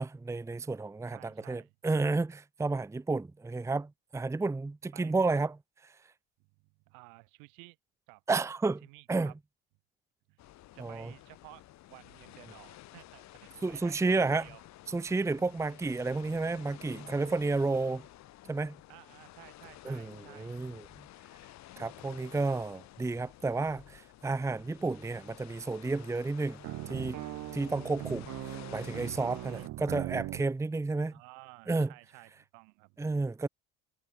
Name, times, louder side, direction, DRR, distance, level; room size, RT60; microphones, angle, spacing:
voice 1, 0.0-5.6 5.8-5.9 8.3-8.8 9.1-9.3 10.8-11.1 13.6-14.5 14.9-18.1 18.5-18.8 19.8-20.8 21.8-27.2 27.5-31.1 31.7-31.9 33.0-33.5, right 3 dB, 10° right, 0.8 m, -31 dB
voice 2, 1.1-1.7 4.9-5.1 6.6-7.8 8.1-8.2 8.8-9.3 10.3-10.4 10.7-11.6 11.9-14.6 18.9-20.6 29.3-29.7 31.1-33.0, right 37 dB, 80° right, 6.4 m, -54 dB
sound 1, 10.4-29.7, left 15 dB, 60° left, 3.6 m, -52 dB
sound 2, 26.6-30.4, right 18 dB, 65° right, 2.0 m, -40 dB
supercardioid pair, 95°, 31 cm